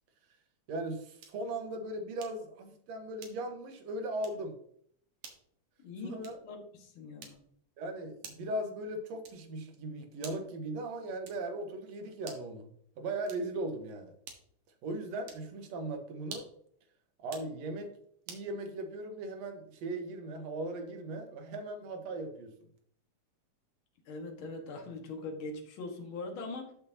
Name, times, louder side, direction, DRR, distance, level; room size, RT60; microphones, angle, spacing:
voice 1, 0.7-4.5 6.0-6.4 7.8-12.7 13.0-14.1 14.8-16.5 17.2-17.9 18.3-22.5, right 2 dB, 65° right, 5 dB, 2.4 m, -38 dB
sound 1, 1.2-1.5 2.2-2.5 3.2-3.6 4.2-4.5 5.2-5.5 6.2-6.5 7.2-7.6 8.2-8.6 9.2-9.6 10.2-10.6 11.2-11.6 12.2-12.6 13.2-13.6 14.2-14.6 15.2-15.5 16.2-16.7 17.2-17.5 18.3-18.5, right 6 dB, 85° right, 3.0 m, -50 dB
voice 2, 5.8-7.4 24.1-26.7, left 3 dB, 50° left, 2 dB, 2.2 m, -42 dB
12.5 x 6.6 x 2.8 m, 0.65 s
omnidirectional pair, 3.4 m